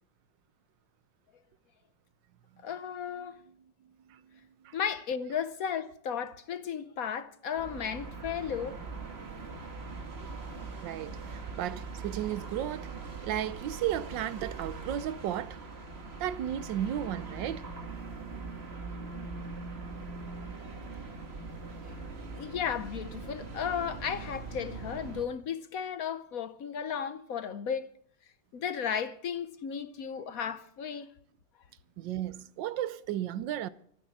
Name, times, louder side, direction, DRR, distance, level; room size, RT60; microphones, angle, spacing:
voice 1, 2.6-3.4 4.7-8.8 19.1-19.2 22.4-27.9 28.5-31.1, left 7 dB, 60° left, 1.1 m, -34 dB
voice 2, 4.1-4.9 10.2-15.6 16.2-17.7 30.0-30.2 32.0-33.7, right 11 dB, 80° right, 1.4 m, -35 dB
sound 1, 7.6-25.3, right 4 dB, 35° right, 1.7 m, -41 dB
26.5 x 9.5 x 4.1 m
omnidirectional pair, 1.9 m